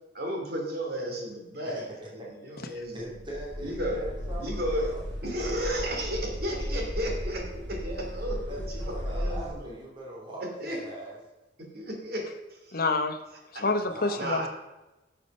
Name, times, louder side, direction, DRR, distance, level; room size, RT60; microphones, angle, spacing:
voice 1, 0.1-1.8 2.1-3.1 3.6-4.0 4.4-4.9 5.2-9.8 10.6-10.8 11.7-12.8 13.5-13.6 14.1-14.5, equal, 60° right, 1 dB, 3.0 m, -33 dB
voice 2, 1.6-2.3 2.9-5.0 5.6-5.7 8.3-11.2 13.8-14.3, right 1 dB, 25° right, -4 dB, 2.8 m, -41 dB
sound 1, 3.1-9.5, equal, 85° right, 3.2 m, -35 dB
voice 3, 12.7-13.2 13.5-14.5, left 3 dB, 55° left, 7 dB, 1.0 m, -27 dB
11.5 x 6.7 x 5.5 m, 1.0 s
head